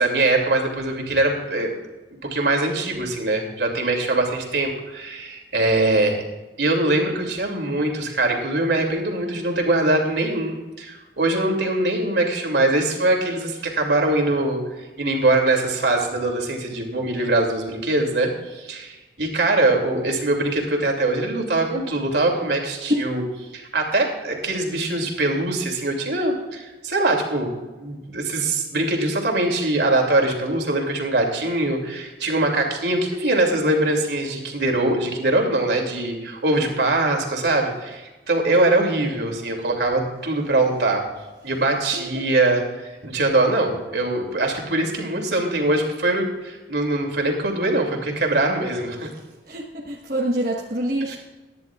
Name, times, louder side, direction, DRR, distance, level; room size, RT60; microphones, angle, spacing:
voice 1, 0.0-1.7 2.2-6.2 6.6-14.6 15.0-23.2 23.5-27.5 27.8-41.0 41.4-49.1 51.1-51.2, right 2 dB, 75° right, 1 dB, 2.7 m, -22 dB
voice 2, 49.5-51.2, equal, 50° right, -3 dB, 1.3 m, -25 dB
23.0 x 10.5 x 2.4 m, 1.2 s
head